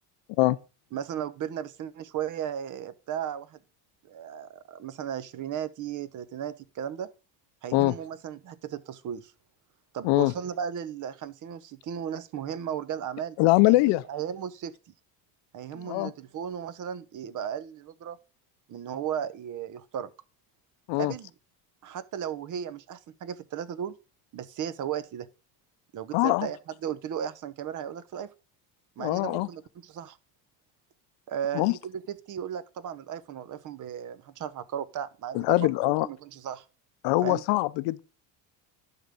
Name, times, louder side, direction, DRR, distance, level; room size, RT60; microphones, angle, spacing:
voice 1, 0.9-3.6 4.0-7.1 7.6-9.3 9.9-13.4 13.6-14.7 15.5-18.2 18.7-20.1 21.0-21.3 21.8-24.0 24.3-25.3 25.9-28.3 29.0-30.2 31.3-36.6 37.2-37.4, right 9 dB, 45° right, 0.8 m, -35 dB
voice 2, 13.4-14.0 15.8-16.1 20.9-21.1 26.1-26.5 29.0-29.5 31.5-31.7 35.3-36.1 37.0-38.0, left 20 dB, 70° left, 0.7 m, -23 dB
11.0 x 3.8 x 6.8 m
cardioid pair, 130°, 45 cm